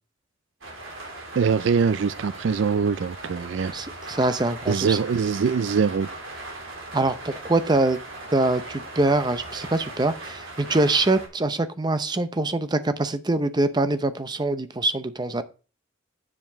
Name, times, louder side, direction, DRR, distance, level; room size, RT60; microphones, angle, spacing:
sound 1, 0.6-11.3, right 2 dB, 85° right, 3.4 m, -39 dB
voice 1, 1.4-3.7 4.7-6.1, right 6 dB, 65° right, 0.4 m, -23 dB
voice 2, 3.7-5.0 6.9-8.0 8.3-15.4, right 2 dB, 20° right, 0.6 m, -24 dB
7.4 x 7.4 x 4.6 m
head